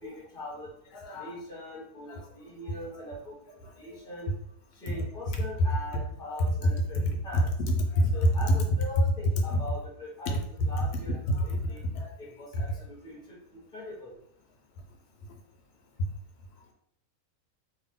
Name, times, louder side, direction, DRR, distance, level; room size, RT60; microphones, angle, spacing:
voice 1, 0.0-0.7 1.2-4.3 4.8-7.5 8.1-10.4 10.6-11.8 12.2-14.1, left 1 dB, 5° left, -6 dB, 0.9 m, -41 dB
voice 2, 0.9-1.3 2.1-2.5 3.0-3.1 3.8-4.0 5.3-5.4 6.4-6.7 7.3-8.6 9.5-9.6 11.1-12.1 12.5-12.8, equal, 80° left, 2 dB, 1.2 m, -27 dB
2.7 x 2.6 x 3.6 m, 0.71 s
omnidirectional pair, 1.6 m